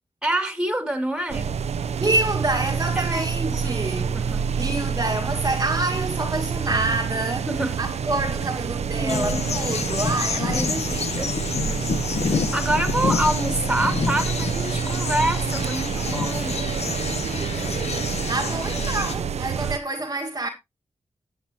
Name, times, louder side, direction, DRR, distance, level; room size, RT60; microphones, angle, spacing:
voice 1, 0.2-1.5 3.0-3.2 3.6-4.4 7.5-7.8 8.8-9.4 10.3-16.6, right 1 dB, 5° right, 2.4 m, -27 dB
sound 1, 1.3-19.8, right 6 dB, 85° right, 0.6 m, -27 dB
voice 2, 2.0-4.2 4.5-7.5 7.8-11.3 18.3-20.5, right 2 dB, 35° right, 1.5 m, -27 dB
sound 2, 9.1-19.2, left 5 dB, 80° left, 0.9 m, -28 dB
13.0 x 7.9 x 2.8 m
cardioid pair, 55°, 11 cm